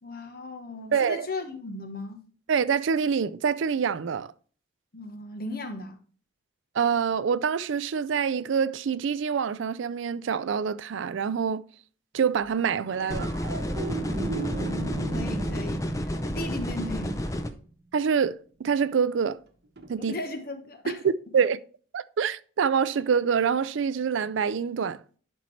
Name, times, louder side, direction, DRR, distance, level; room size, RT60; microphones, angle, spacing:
voice 1, 0.0-2.2 4.9-6.0 13.9-17.2 20.0-21.0, left 2 dB, 45° left, 1.1 m, -37 dB
voice 2, 0.9-1.3 2.5-4.3 6.7-11.6 12.1-13.3 17.9-19.4 19.9-20.1 21.0-21.6 21.9-25.0, right 6 dB, 75° right, 0.4 m, -26 dB
sound 1, 12.9-17.4 19.8-19.9, right 2 dB, 55° right, 1.0 m, -36 dB
sound 2, 13.1-17.5, equal, 15° left, 0.6 m, -31 dB
11.0 x 4.4 x 3.2 m
head